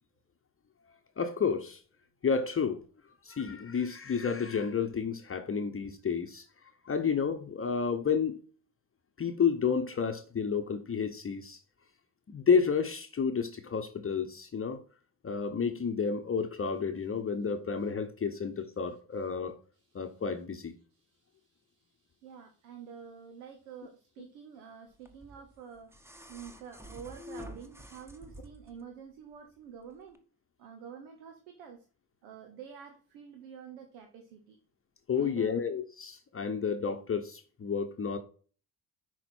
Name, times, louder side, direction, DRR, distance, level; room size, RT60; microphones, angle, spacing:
voice 1, 1.2-1.8 2.2-2.8 3.2-6.4 6.8-8.4 9.2-11.6 12.3-14.8 15.2-19.6 19.9-20.8 35.1-38.2, left 6 dB, 30° left, 0.8 m, -30 dB
voice 2, 19.7-20.2 20.9-25.9 26.3-30.2 30.6-31.8 32.2-34.6 35.1-35.6, right 7 dB, 90° right, 0.9 m, -48 dB
sound 1, 25.1-28.8 30.1-30.2, equal, 5° right, 1.1 m, -48 dB
5.9 x 4.3 x 4.3 m
hypercardioid pair, 55°, 42 cm